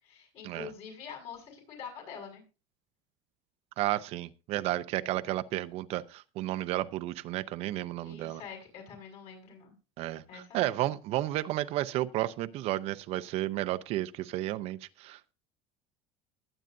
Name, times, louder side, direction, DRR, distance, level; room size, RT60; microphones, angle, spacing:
voice 1, 0.0-2.4 8.0-9.7 10.3-10.8, left 6 dB, 50° left, 2 dB, 6.6 m, -45 dB
voice 2, 3.8-8.4 10.0-15.3, right 15 dB, 50° right, 12 dB, 0.6 m, -32 dB
21.5 x 9.0 x 2.6 m, 0.32 s
cardioid pair, 150°, 13 cm